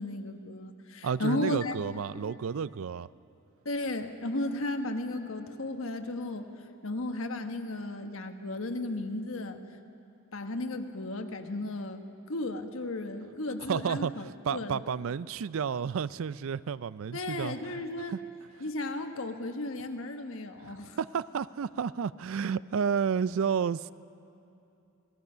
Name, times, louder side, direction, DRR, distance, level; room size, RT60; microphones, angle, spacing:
voice 1, 0.0-1.7 3.6-6.4 6.8-9.6 10.3-14.8 17.1-18.1 18.6-21.0, left 2 dB, 75° left, 6 dB, 1.3 m, -34 dB
voice 2, 1.0-3.1 13.7-17.6 18.1-18.2 20.6-23.9, right 6 dB, 75° right, 18 dB, 0.4 m, -31 dB
27.0 x 18.5 x 5.6 m, 2.7 s
head